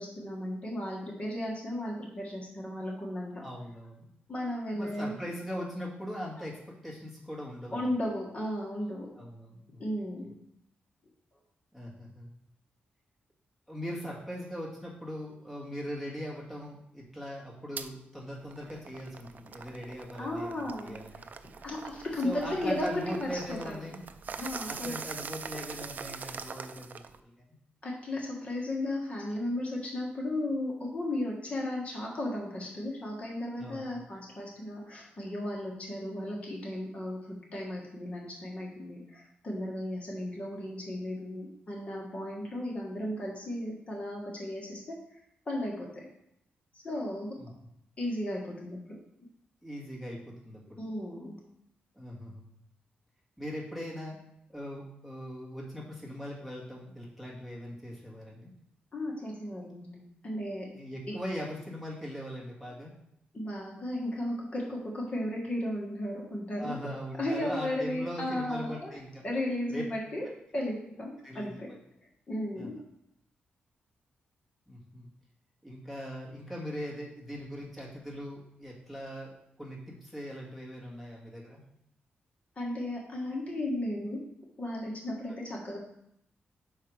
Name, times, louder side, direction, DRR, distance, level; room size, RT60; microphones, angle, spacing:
voice 1, 0.0-3.3 4.3-5.1 7.7-9.1 9.8-10.3 20.2-21.2 21.5-23.8 24.4-24.9 26.2-26.3 27.8-44.9 45.5-46.0 46.8-47.3 48.0-49.0 50.8-51.4 58.9-60.7 61.1-61.2 63.3-66.8 67.2-68.9 69.2-70.2 70.5-71.7 72.3-72.8 82.6-84.2 84.6-85.8, left 1 dB, 35° left, -2 dB, 1.6 m, -35 dB
voice 2, 3.4-4.1 4.7-7.9 9.2-9.8 11.7-12.4 13.7-21.2 22.2-24.0 24.6-27.6 33.6-34.1 47.3-47.5 49.6-50.8 52.0-52.5 53.4-54.2 54.5-58.5 60.7-62.9 66.5-69.3 69.7-69.8 71.2-71.8 72.6-72.7 74.7-75.1 75.6-79.3 79.6-81.6, equal, ahead, -5 dB, 1.8 m, -40 dB
sound 1, 17.8-17.9 18.4-27.2, right 5 dB, 50° right, 0.4 m, -43 dB
5.8 x 4.7 x 4.8 m, 0.77 s
wide cardioid pair, 115°, 4 cm